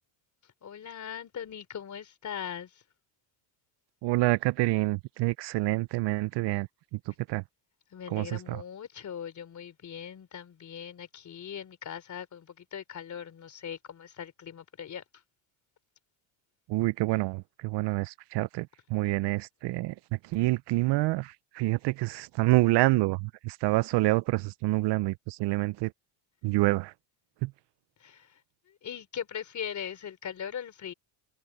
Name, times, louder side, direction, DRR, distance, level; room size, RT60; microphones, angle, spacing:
voice 1, 0.6-2.8 7.9-15.0 19.0-19.1 28.0-28.4 28.7-30.9, left 8 dB, 35° left, 3.5 m, -40 dB
voice 2, 4.0-7.0 7.3-7.4 8.1-8.6 16.7-19.9 20.3-25.9 26.4-26.9 27.4-27.5, right 20 dB, 55° right, 0.6 m, -27 dB
cardioid pair, 135°, 50 cm